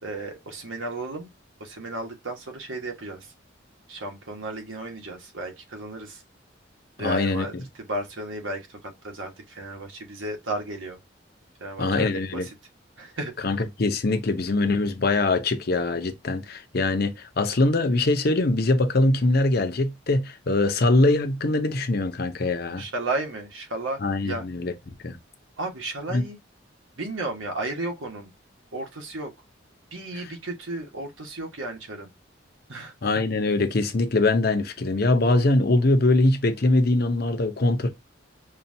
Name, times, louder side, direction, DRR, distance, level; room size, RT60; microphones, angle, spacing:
voice 1, 0.0-1.3 1.6-3.3 3.9-6.2 7.0-7.5 7.8-8.8 9.0-11.0 11.6-12.1 12.3-12.5 13.0-13.3 22.8-24.4 25.6-26.4 27.0-28.3 28.7-29.3 29.9-32.1 32.7-32.9, right 2 dB, 90° right, 1.3 m, -33 dB
voice 2, 7.0-7.5 11.8-12.5 13.4-22.8 24.0-24.7 25.0-25.2 26.1-26.2 30.1-30.3 33.0-37.9, left 2 dB, 55° left, 0.7 m, -22 dB
5.5 x 2.4 x 2.7 m
head